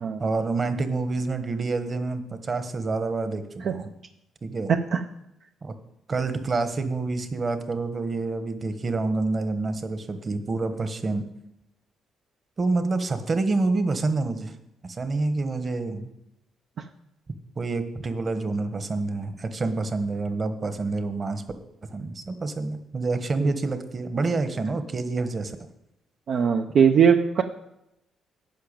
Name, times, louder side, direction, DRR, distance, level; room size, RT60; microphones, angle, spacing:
voice 1, 0.2-3.9 4.4-4.7 5.6-5.7 6.1-11.2 12.6-14.5 14.8-16.1 17.5-21.4 21.9-25.6, right 3 dB, 35° right, 9 dB, 1.3 m, -27 dB
voice 2, 4.7-5.0 23.4-23.5 26.3-27.4, right 7 dB, 60° right, 5 dB, 0.6 m, -20 dB
10.5 x 5.9 x 8.8 m, 0.85 s
cardioid pair, 90°, 0 cm